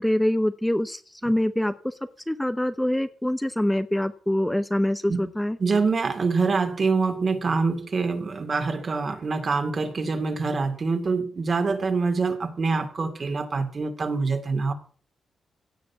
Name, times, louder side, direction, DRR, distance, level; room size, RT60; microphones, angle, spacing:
voice 1, 0.0-1.9 2.3-5.6, left 1 dB, 5° left, 9 dB, 0.8 m, -25 dB
voice 2, 5.6-14.7, right 4 dB, 45° right, 6 dB, 2.4 m, -25 dB
16.5 x 6.8 x 8.3 m, 0.42 s
cardioid pair, 105°, 0 cm